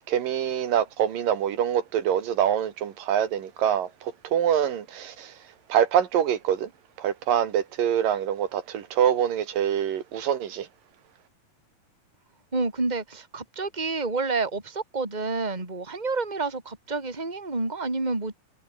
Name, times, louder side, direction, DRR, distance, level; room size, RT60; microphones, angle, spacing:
voice 1, 0.1-5.3 5.7-6.7 7.0-10.7, right 9 dB, 60° right, 3.4 m, -25 dB
voice 2, 12.5-18.4, right 3 dB, 10° right, 4.2 m, -29 dB
omnidirectional pair, 4.6 m